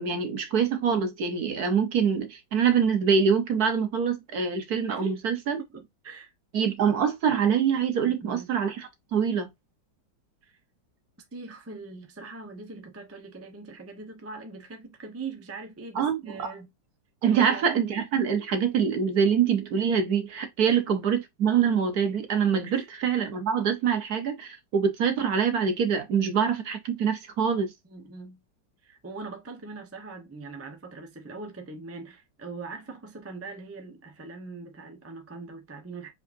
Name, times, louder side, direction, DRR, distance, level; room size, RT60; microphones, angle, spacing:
voice 1, 0.0-5.6 6.5-9.5 15.9-16.5 17.2-27.7, right 7 dB, 55° right, 1.4 m, -25 dB
voice 2, 4.9-5.2 5.7-6.3 8.0-8.5 10.4-10.6 11.3-16.7 17.3-18.0 20.7-20.8 22.7-22.9 27.8-28.4 28.8-36.1, right 3 dB, 15° right, 0.5 m, -41 dB
4.9 x 4.0 x 2.6 m
omnidirectional pair, 2.0 m